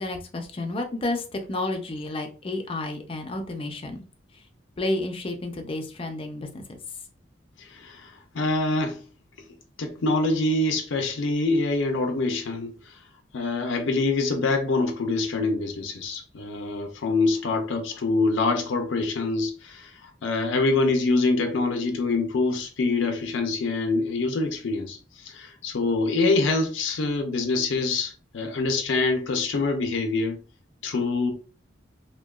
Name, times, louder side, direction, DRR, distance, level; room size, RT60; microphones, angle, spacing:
voice 1, 0.0-4.0 4.3-4.4 4.8-6.8, left 2 dB, 30° left, 0.4 m, -31 dB
voice 2, 7.6-9.0 9.8-12.7 13.3-30.4 30.8-31.3, left 3 dB, 85° left, 0.5 m, -25 dB
2.8 x 2.2 x 2.3 m
head